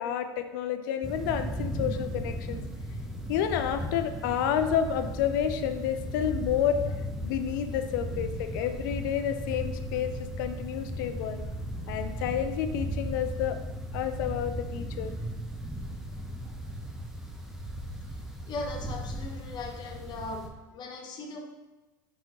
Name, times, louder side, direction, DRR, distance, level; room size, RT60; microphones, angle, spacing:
voice 1, 0.0-2.6 3.3-6.8 7.2-11.4 11.9-13.6 13.9-15.1, left 9 dB, 75° left, 9 dB, 0.4 m, -30 dB
sound 1, 1.0-20.5, equal, 5° right, 0.6 m, -36 dB
voice 2, 18.5-21.5, left 2 dB, 45° left, 3 dB, 0.8 m, -39 dB
4.1 x 3.5 x 2.9 m, 1.1 s
hypercardioid pair, 90°, 11 cm